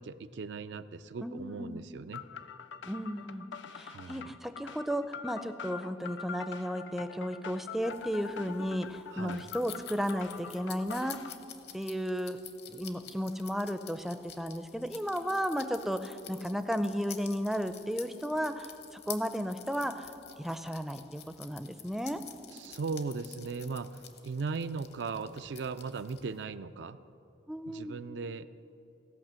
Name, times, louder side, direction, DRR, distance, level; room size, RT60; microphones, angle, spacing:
voice 1, 0.0-2.2 3.8-4.3 9.1-9.4 22.5-27.0 27.7-28.5, right 4 dB, 75° right, 12 dB, 0.4 m, -38 dB
voice 2, 1.2-1.8 2.9-11.2 11.7-12.4 12.7-22.2 27.5-28.0, equal, ahead, 9 dB, 0.4 m, -34 dB
sound 1, 2.1-11.4, left 6 dB, 80° left, 0.4 m, -45 dB
sound 2, 7.8-26.4, left 10 dB, 60° left, 0.8 m, -50 dB
17.0 x 5.7 x 7.5 m, 2.7 s
head